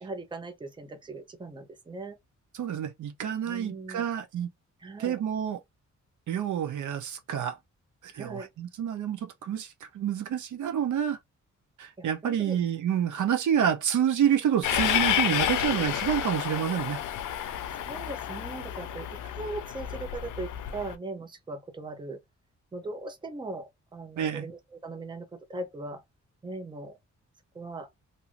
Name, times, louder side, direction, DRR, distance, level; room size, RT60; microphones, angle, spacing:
voice 1, 0.0-2.2 3.5-4.1 4.8-5.2 8.1-8.5 12.0-12.6 17.8-22.2 22.7-26.0 26.4-27.0 27.5-27.9, right 2 dB, 15° right, 0.6 m, -39 dB
voice 2, 2.5-4.5 5.0-5.6 6.3-7.6 8.0-11.2 11.8-17.0 24.2-24.5, right 9 dB, 80° right, 0.7 m, -28 dB
Train, 14.6-20.9, left 11 dB, 85° left, 0.5 m, -30 dB
2.6 x 2.5 x 2.8 m
wide cardioid pair, 130°, 30 cm